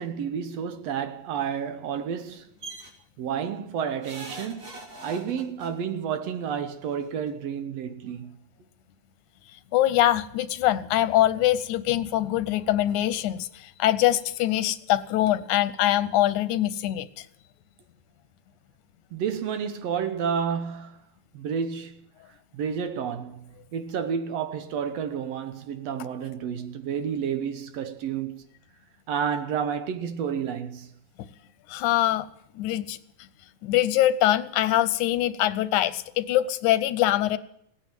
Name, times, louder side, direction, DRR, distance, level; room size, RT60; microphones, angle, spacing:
voice 1, 0.0-2.5 3.2-4.7 5.0-8.4 19.1-21.0 21.3-22.0 22.5-28.4 29.1-30.9, right 7 dB, 70° right, 1.9 m, -30 dB
sound 1, 2.6-2.9 4.0-5.7 6.9-7.0 7.3-7.4, right 2 dB, 35° right, 2.4 m, -41 dB
voice 2, 9.7-17.2 31.7-32.3 32.6-33.0 33.6-37.4, left 13 dB, 90° left, 2.2 m, -23 dB
16.5 x 9.3 x 9.0 m
omnidirectional pair, 3.4 m